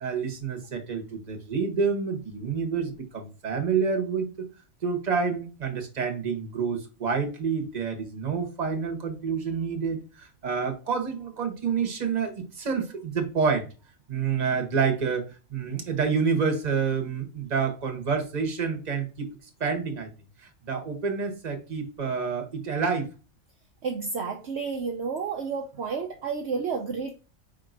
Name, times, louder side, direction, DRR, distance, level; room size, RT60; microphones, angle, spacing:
voice 1, 0.0-4.3 4.8-13.7 14.1-15.2 15.5-19.3 19.6-20.1 20.7-23.1, right 5 dB, 35° right, 1.1 m, -28 dB
voice 2, 23.8-27.1, right 5 dB, 60° right, 0.9 m, -31 dB
4.6 x 4.6 x 2.6 m
omnidirectional pair, 1.4 m